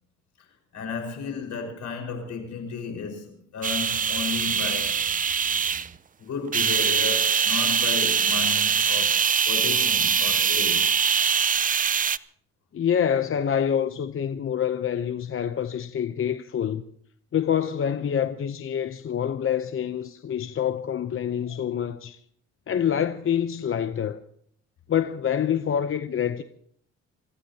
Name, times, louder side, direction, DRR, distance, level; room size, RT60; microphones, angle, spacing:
voice 1, 0.7-5.3 6.2-11.0 21.4-21.6, left 5 dB, 70° left, 5.2 m, -34 dB
sound 1, 3.6-5.9 6.5-12.2, right 7 dB, 30° right, 0.5 m, -23 dB
voice 2, 12.7-16.8 17.3-22.2 22.7-24.2 24.9-26.4, left 9 dB, 45° left, 0.8 m, -26 dB
26.5 x 16.0 x 2.9 m
cardioid pair, 90°, 30 cm